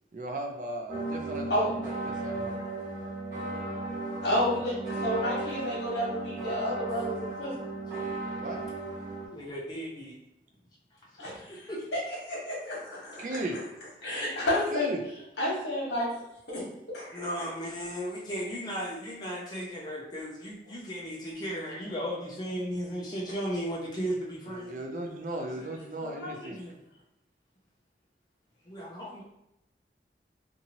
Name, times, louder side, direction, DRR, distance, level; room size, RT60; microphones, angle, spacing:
voice 1, 0.1-2.6 8.4-8.7 13.2-13.6 14.7-15.1 24.5-26.6, right 1 dB, 45° right, 3 dB, 0.4 m, -37 dB
sound 1, 0.9-9.3, right 2 dB, 15° right, 1.2 m, -35 dB
voice 2, 4.2-4.7 5.0-7.5 11.2-11.3 12.3-13.4 14.0-14.9 15.4-16.1 16.5-16.6 16.9-17.2 26.2-26.5, left 1 dB, 75° left, -5 dB, 1.2 m, -30 dB
voice 3, 9.3-10.2 11.0-11.9 17.1-24.8 25.6-25.7 26.0-26.8 28.7-29.2, equal, 25° left, -4 dB, 0.4 m, -36 dB
2.7 x 2.5 x 2.8 m, 0.84 s
head